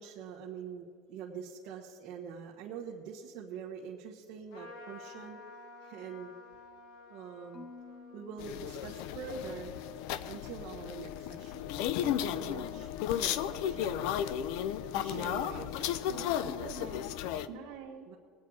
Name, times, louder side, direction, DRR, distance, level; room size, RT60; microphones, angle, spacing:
voice 1, 0.0-5.4 5.8-6.3 7.1-7.7 8.1-9.8 10.3-14.1 14.9-15.9 18.1-18.2, right 6 dB, 50° right, -3 dB, 1.4 m, -44 dB
Trumpet, 4.5-10.3, left 3 dB, 80° left, 2.1 m, -53 dB
Marimba xylophone / Wood, 7.5-9.7, left 4 dB, 15° left, 0.5 m, -53 dB
sound 1, 8.4-17.5, left 10 dB, 60° left, 0.5 m, -34 dB
voice 2, 15.1-17.2 17.5-18.1, right 6 dB, 65° right, -3 dB, 1.4 m, -47 dB
20.5 x 8.5 x 4.8 m, 2.4 s
cardioid pair, 160°, 0 cm